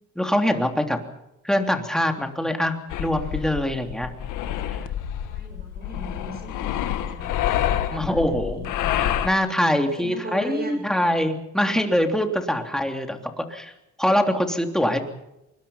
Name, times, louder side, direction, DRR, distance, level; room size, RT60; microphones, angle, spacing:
voice 1, 0.2-1.0 1.4-4.1 7.9-8.6 9.0-13.7 14.0-15.0, equal, ahead, 4 dB, 3.3 m, -23 dB
sound 1, 2.9-9.3, left 11 dB, 90° left, 1.7 m, -27 dB
voice 2, 5.1-8.7 10.0-11.0, right 1 dB, 30° right, 4 dB, 7.7 m, -38 dB
24.5 x 21.5 x 5.7 m, 0.89 s
cardioid pair, 90°, 30 cm